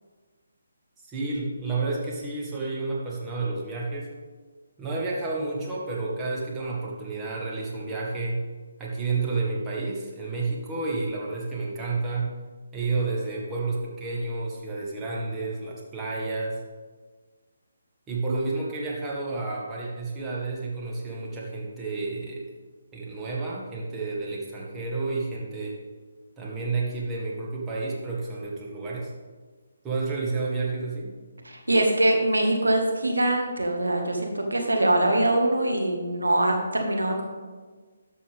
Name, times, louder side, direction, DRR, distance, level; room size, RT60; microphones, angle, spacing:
voice 1, 1.0-4.1 4.8-8.4 8.8-12.3 12.7-16.6 18.1-22.4 22.9-25.8 26.4-29.1 29.8-31.2, right 3 dB, 15° right, -4 dB, 1.9 m, -30 dB
voice 2, 31.4-37.2, right 1 dB, 90° right, 2 dB, 1.7 m, -23 dB
12.5 x 6.9 x 3.6 m, 1.4 s
figure-of-eight pair, 145°, 0 cm